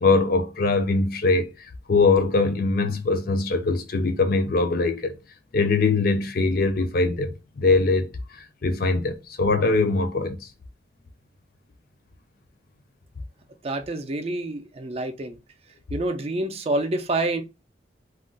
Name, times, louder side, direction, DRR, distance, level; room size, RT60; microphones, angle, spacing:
voice 1, 0.0-5.2 5.5-10.5, left 3 dB, 50° left, 0.4 m, -22 dB
voice 2, 13.6-15.4 15.9-17.4, right 2 dB, 30° right, 0.4 m, -27 dB
2.4 x 2.2 x 3.7 m
head